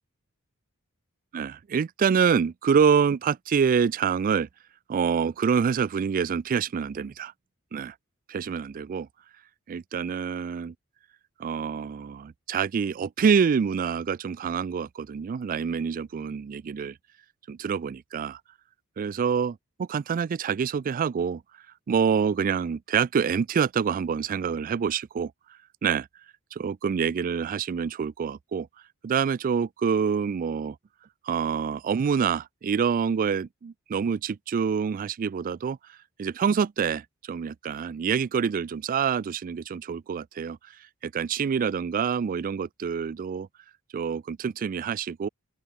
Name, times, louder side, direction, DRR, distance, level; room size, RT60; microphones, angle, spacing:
voice 1, 1.3-4.5 4.9-7.3 7.7-7.9 8.3-9.1 9.7-10.7 11.4-17.0 17.5-18.4 19.0-21.4 21.9-25.3 25.8-26.1 26.5-28.7 29.0-30.8 31.2-40.6 41.0-43.5 43.9-45.3, right 6 dB, 40° right, 0.3 m, -26 dB
open air
head